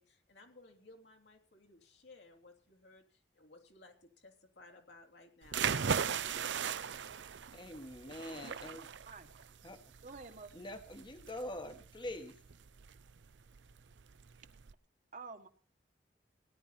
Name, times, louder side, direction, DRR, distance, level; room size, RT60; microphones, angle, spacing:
voice 1, 0.0-6.7, left 2 dB, 70° left, 3 dB, 3.1 m, -59 dB
sound 1, 5.4-14.7, right 7 dB, 90° right, 0.6 m, -39 dB
voice 2, 7.5-8.9 9.6-9.8 10.5-12.4, left 1 dB, 25° left, 7 dB, 1.3 m, -44 dB
voice 3, 9.1-9.5 10.0-10.5 15.1-15.5, right 4 dB, 45° right, 6 dB, 1.6 m, -49 dB
17.5 x 11.0 x 4.3 m, 0.40 s
head